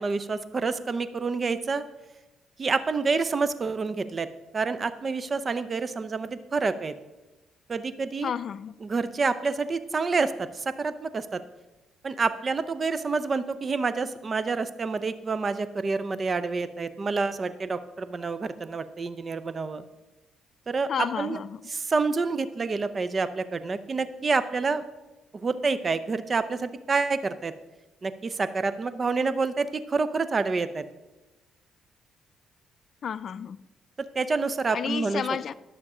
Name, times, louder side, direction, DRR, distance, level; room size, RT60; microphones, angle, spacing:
voice 1, 0.0-1.8 2.6-4.3 4.5-6.9 7.7-8.3 8.8-11.4 12.0-19.8 20.7-21.4 21.7-24.8 25.3-27.5 28.0-30.9 34.1-35.2, right 4 dB, 35° right, 13 dB, 0.6 m, -28 dB
voice 2, 8.2-8.7 20.9-21.6 33.0-33.6 34.7-35.5, left 7 dB, 55° left, 17 dB, 0.3 m, -31 dB
12.5 x 6.6 x 4.9 m, 1.1 s
cardioid pair, 90°, 0 cm